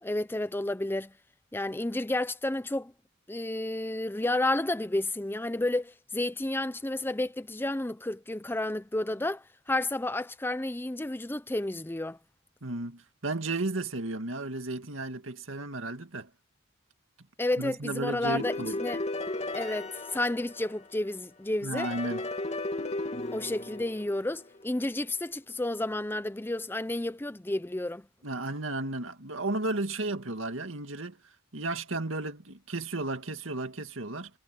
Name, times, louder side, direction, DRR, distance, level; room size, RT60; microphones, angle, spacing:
voice 1, 0.0-1.1 1.5-2.9 3.3-12.2 17.4-19.0 19.5-21.9 23.3-28.1, left 1 dB, 10° left, 0.5 m, -31 dB
voice 2, 12.6-16.3 17.6-18.8 21.6-22.2 28.2-31.2 31.5-34.3, right 2 dB, 75° right, 2.2 m, -34 dB
sound 1, 18.3-21.1 21.8-24.6, left 2 dB, 35° left, 2.5 m, -35 dB
head